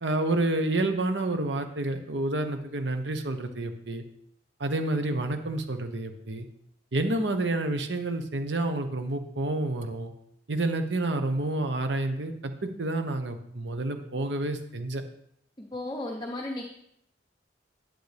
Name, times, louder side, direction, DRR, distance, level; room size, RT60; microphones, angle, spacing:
voice 1, 0.0-4.0 4.6-6.5 6.9-10.1 10.5-15.0, right 2 dB, 80° right, 7 dB, 1.0 m, -29 dB
voice 2, 15.6-16.6, left 1 dB, 25° left, 1 dB, 0.8 m, -34 dB
10.5 x 7.8 x 3.4 m, 0.73 s
head